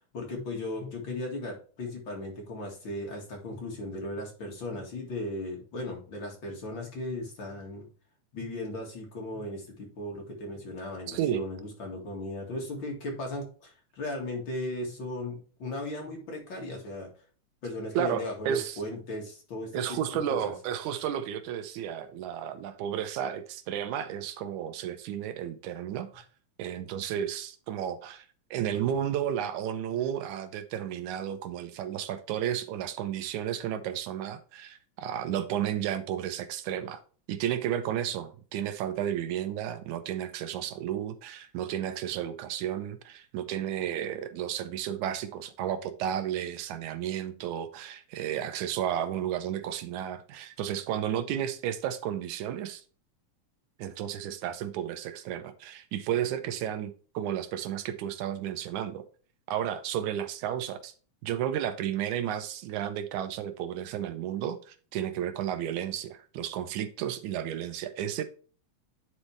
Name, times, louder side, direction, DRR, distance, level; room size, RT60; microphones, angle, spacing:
voice 1, 0.1-7.9 8.3-17.1 17.6-20.0 20.3-20.5 28.7-28.8, left 1 dB, 45° left, 2.3 m, -37 dB
voice 2, 11.1-11.4 17.9-18.8 19.7-26.3 26.6-37.0 37.3-52.8 53.8-59.1 59.5-60.9 61.2-68.2, right 10 dB, 85° right, 2.2 m, -32 dB
10.0 x 4.2 x 3.2 m
omnidirectional pair, 3.4 m